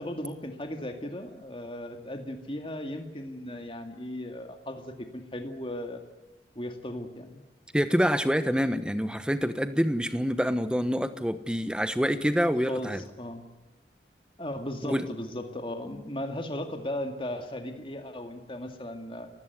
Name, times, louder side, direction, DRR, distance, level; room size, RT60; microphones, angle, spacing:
voice 1, 0.0-6.0 6.6-7.4 12.7-13.4 14.4-19.3, left 1 dB, 30° left, 5 dB, 2.1 m, -36 dB
voice 2, 7.7-13.0 14.8-15.1, equal, 5° right, 11 dB, 1.1 m, -26 dB
29.5 x 16.5 x 9.5 m, 1.1 s
head